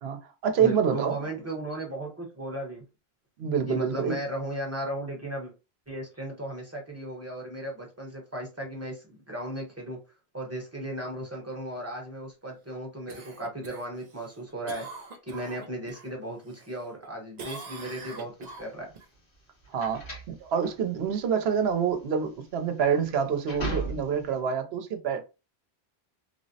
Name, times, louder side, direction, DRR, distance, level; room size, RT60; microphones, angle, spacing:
voice 1, 0.0-1.3 3.4-4.2 19.7-25.2, right 7 dB, 75° right, 0.8 m, -27 dB
voice 2, 0.6-2.8 3.7-5.5 5.9-10.0 10.3-14.9 15.2-18.9, right 1 dB, 15° right, 0.8 m, -36 dB
Cough, 13.1-16.1 16.5-17.1 17.4-19.1 23.5-23.6, right 4 dB, 55° right, 0.5 m, -44 dB
sound 1, 18.4-24.4, right 2 dB, 75° left, 1.4 m, -38 dB
3.2 x 2.0 x 2.6 m
omnidirectional pair, 1.1 m